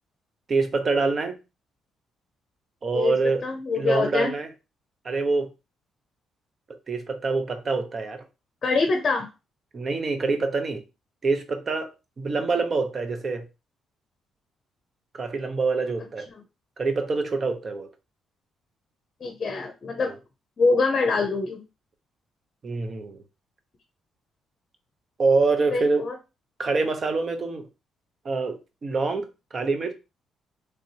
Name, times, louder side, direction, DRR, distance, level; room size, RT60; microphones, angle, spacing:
voice 1, 0.5-1.4 2.8-3.4 3.7-4.5 5.0-5.5 6.9-8.2 9.7-10.8 11.2-11.9 12.2-13.4 15.1-16.3 16.8-17.9 20.1-20.2 22.6-23.2 25.2-26.1 26.6-27.7 28.2-29.9, right 3 dB, 40° right, 0.7 m, -25 dB
voice 2, 3.4-4.3 8.6-9.3 16.3-16.4 19.2-20.1 20.6-21.6 25.7-26.1, left 3 dB, 45° left, 0.6 m, -24 dB
3.4 x 2.7 x 2.7 m
cardioid pair, 90°, 0 cm